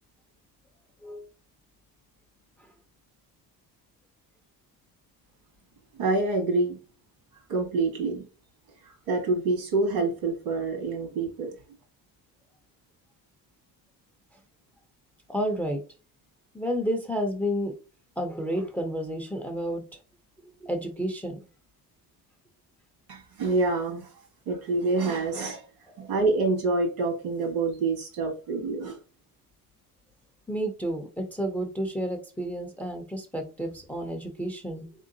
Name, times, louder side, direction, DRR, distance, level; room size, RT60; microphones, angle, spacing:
voice 1, 5.9-6.8 7.3-8.2 8.8-11.6 23.1-25.6 26.0-29.0, right 3 dB, 85° right, 2 dB, 2.1 m, -27 dB
voice 2, 15.3-15.8 16.5-17.7 18.2-19.8 20.6-21.4 30.5-34.9, equal, 5° left, 5 dB, 0.4 m, -30 dB
4.3 x 3.6 x 2.6 m, 0.34 s
cardioid pair, 170°, 38 cm